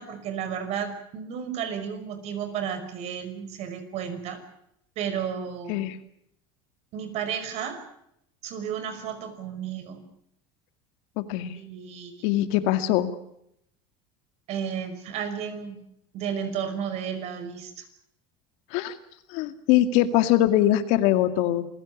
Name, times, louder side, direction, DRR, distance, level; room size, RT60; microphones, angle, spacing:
voice 1, 0.0-4.4 5.0-5.9 6.9-7.8 8.4-10.0 11.6-12.2 14.5-15.8 16.1-17.9, right 8 dB, 55° right, 10 dB, 5.5 m, -33 dB
voice 2, 11.2-11.6 12.2-13.1 18.7-19.0 19.3-21.7, left 13 dB, 70° left, 10 dB, 2.2 m, -22 dB
27.5 x 17.0 x 8.5 m, 0.75 s
supercardioid pair, 125°, 13 cm